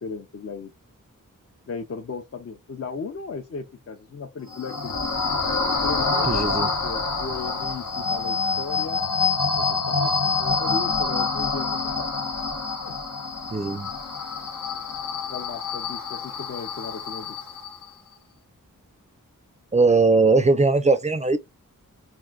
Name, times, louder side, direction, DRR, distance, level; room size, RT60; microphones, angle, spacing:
voice 1, 0.0-0.7 1.7-4.9 5.8-9.0 9.5-12.2 12.8-12.9 15.3-17.5, left 5 dB, 45° left, 0.5 m, -36 dB
sound 1, 4.5-17.9, left 4 dB, 75° left, 0.9 m, -26 dB
voice 2, 6.3-6.7 13.5-13.9 19.7-21.4, right 3 dB, 20° right, 0.3 m, -19 dB
3.5 x 2.5 x 2.3 m
wide cardioid pair, 100°, 34 cm